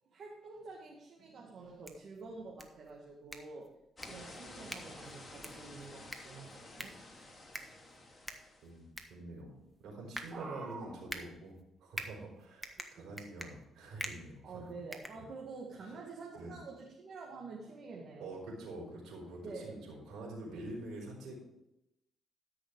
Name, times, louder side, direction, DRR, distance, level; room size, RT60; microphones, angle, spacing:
voice 1, 0.1-3.7 4.0-7.0 10.3-11.0 12.8-13.1 14.4-18.3 19.4-19.8, right 4 dB, 55° right, -2 dB, 2.1 m, -48 dB
sound 1, 1.6-15.8, right 1 dB, 10° right, 1.4 m, -48 dB
sound 2, 4.0-8.8, left 2 dB, 25° left, 2.8 m, -51 dB
voice 2, 8.6-14.7 16.3-16.5 18.2-21.4, right 2 dB, 75° right, -3 dB, 4.6 m, -46 dB
13.0 x 6.3 x 4.9 m, 0.87 s
cardioid pair, 90°, 0 cm